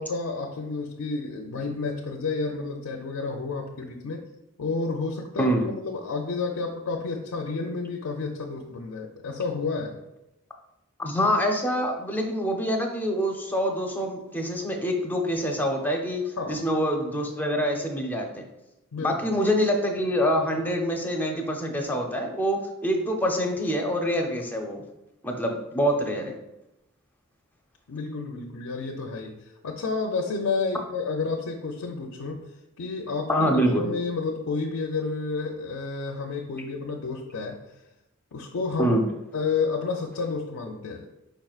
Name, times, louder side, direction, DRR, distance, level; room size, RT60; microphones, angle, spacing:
voice 1, 0.0-4.2 4.6-10.0 16.4-16.6 18.9-19.3 27.9-32.5 32.8-37.6 38.3-39.0 39.3-41.1, left 4 dB, 85° left, 1 dB, 0.5 m, -30 dB
voice 2, 5.4-5.7 11.0-16.2 16.5-18.5 19.0-24.8 25.2-26.3 33.3-33.9 38.8-39.0, equal, 10° left, 2 dB, 0.5 m, -25 dB
5.0 x 4.4 x 2.4 m, 0.93 s
head